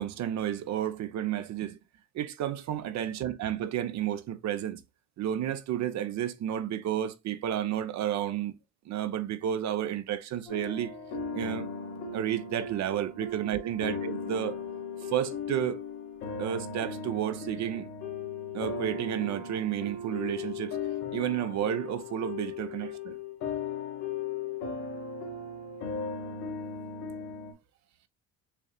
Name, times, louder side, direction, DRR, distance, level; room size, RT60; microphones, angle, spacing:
voice 1, 0.0-1.8 2.1-4.8 5.2-8.6 8.9-10.9 11.3-11.7 12.1-14.6 15.1-15.8 16.4-17.9 18.5-20.8 21.1-23.2, right 10 dB, 55° right, 0.8 m, -31 dB
sound 1, 10.5-27.5, left 5 dB, 90° left, 1.5 m, -37 dB
6.9 x 2.7 x 2.3 m
supercardioid pair, 75°, 33 cm